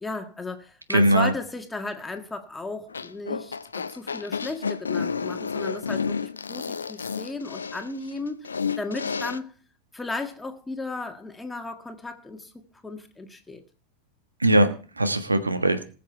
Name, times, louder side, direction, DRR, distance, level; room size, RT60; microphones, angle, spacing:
voice 1, 0.0-8.5 8.8-9.5 9.9-12.5 12.8-13.6, left 3 dB, 10° left, 1.8 m, -35 dB
voice 2, 0.9-1.3 14.4-15.8, right 1 dB, 80° right, 1.4 m, -21 dB
sound 1, 2.9-9.4, left 5 dB, 75° left, 0.6 m, -31 dB
20.0 x 7.6 x 4.4 m
figure-of-eight pair, 90°, 0 cm